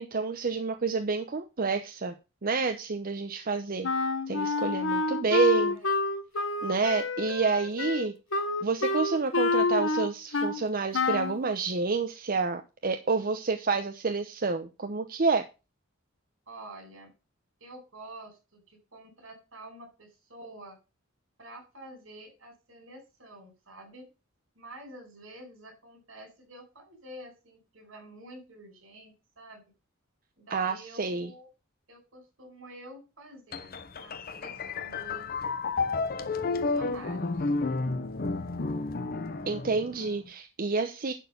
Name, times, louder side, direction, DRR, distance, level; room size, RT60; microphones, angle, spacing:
voice 1, 0.0-2.1 2.4-3.9 4.3-5.8 6.6-8.1 8.6-15.4 30.5-31.3 39.5-41.1, right 4 dB, 45° right, 7 dB, 0.8 m, -29 dB
Wind instrument woodwind instrument, 3.8-10.6 10.9-11.4, left 3 dB, 70° left, 1.2 m, -28 dB
voice 2, 4.7-5.9 16.5-17.1 17.6-20.8 21.4-24.1 24.6-29.6 30.4-31.5 31.9-33.7 34.0-35.4 36.2-37.5, right 1 dB, 75° right, 4 dB, 5.2 m, -48 dB
sound 1, 33.5-40.2, left 3 dB, 50° left, 0.8 m, -31 dB
11.0 x 4.4 x 6.6 m, 0.29 s
head